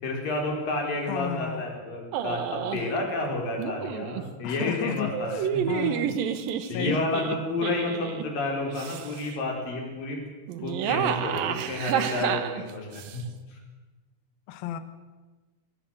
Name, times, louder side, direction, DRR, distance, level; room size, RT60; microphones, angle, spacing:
voice 1, 0.0-5.8 6.7-10.3 10.6-13.2 13.5-13.6, left 2 dB, 45° left, 1 dB, 6.0 m, -30 dB
voice 2, 1.1-1.7 4.4-6.2 6.7-7.3 14.5-14.8, left 11 dB, 65° left, 11 dB, 2.5 m, -33 dB
sound 1, 2.1-2.9 3.6-4.2 5.1-8.3 8.7-9.3 10.5-13.2, right 9 dB, 70° right, 2.2 m, -30 dB
23.5 x 19.0 x 7.9 m, 1.3 s
omnidirectional pair, 5.6 m